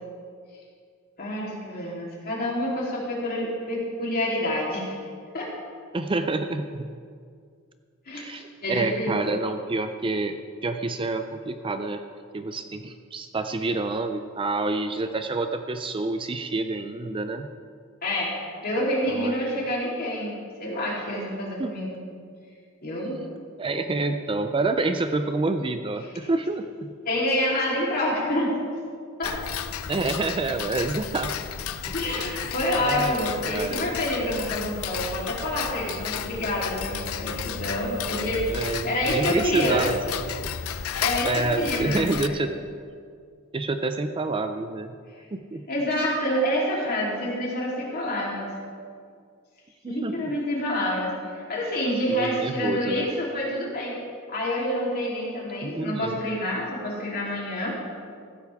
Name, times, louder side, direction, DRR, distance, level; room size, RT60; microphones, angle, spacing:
voice 1, 1.2-5.0 5.3-5.5 8.1-9.4 18.0-18.3 18.6-22.0 22.8-23.2 27.0-28.5 29.2-29.3 31.9-39.8 41.0-42.4 45.7-48.5 49.9-54.0 54.3-57.8, left 1 dB, 45° left, -4 dB, 3.4 m, -27 dB
voice 2, 5.9-6.9 8.1-12.0 12.3-17.5 19.1-19.6 21.6-21.7 23.6-27.0 29.9-31.3 31.9-32.2 32.8-33.2 33.5-33.9 38.5-40.5 41.2-42.5 43.5-44.9 45.3-45.6 49.8-50.3 52.1-53.1 55.6-56.2, right 3 dB, 25° right, 8 dB, 0.4 m, -28 dB
Tick-tock, 29.2-42.3, left 8 dB, 70° left, 0.6 m, -33 dB
15.0 x 13.0 x 3.6 m, 2.1 s
head